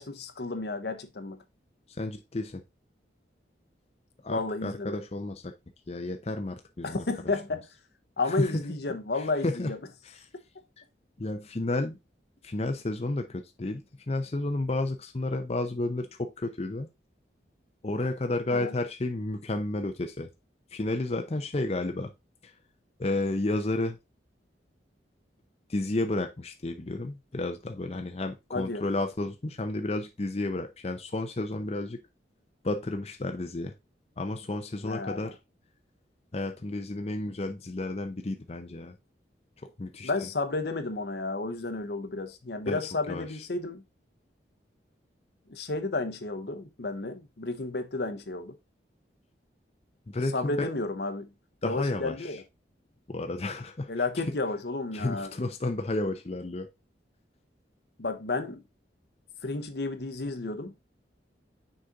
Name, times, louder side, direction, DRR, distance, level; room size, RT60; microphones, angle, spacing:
voice 1, 0.0-1.4 4.3-5.0 6.8-7.7 8.2-9.8 18.5-18.8 28.5-28.9 34.8-35.3 40.0-43.8 45.5-48.5 50.3-51.3 51.6-52.4 53.9-55.3 58.0-58.6 59.4-60.7, left 3 dB, 65° left, 0.8 m, -32 dB
voice 2, 2.0-2.6 4.2-5.5 5.9-7.0 8.2-8.6 9.2-9.7 10.0-10.2 11.2-12.0 12.4-16.9 17.8-20.3 20.7-22.1 23.0-24.0 25.7-32.0 32.6-33.7 34.2-35.4 36.3-38.9 39.6-40.1 42.6-42.8 43.1-43.3 50.1-50.7 51.6-52.4 53.1-53.9 54.2-54.3 54.9-56.7, left 2 dB, 35° left, 0.6 m, -31 dB
6.5 x 4.2 x 3.7 m
head